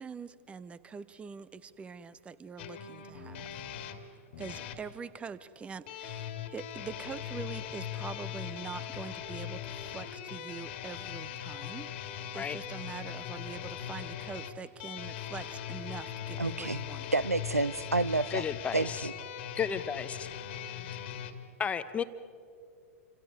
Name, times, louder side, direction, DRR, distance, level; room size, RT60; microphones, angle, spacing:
voice 1, 0.0-3.6 4.4-17.3, right 5 dB, 15° right, 17 dB, 0.8 m, -44 dB
sound 1, 2.6-4.8 5.9-21.3, left 9 dB, 45° left, 2.0 m, -40 dB
voice 2, 16.4-16.8 17.1-18.4 18.7-19.1, right 3 dB, 85° right, 20 dB, 0.5 m, -29 dB
voice 3, 18.3-19.1 19.6-20.3 21.6-22.0, left 7 dB, 15° left, 12 dB, 0.9 m, -33 dB
29.0 x 26.5 x 5.0 m, 2.4 s
figure-of-eight pair, 100°, 8 cm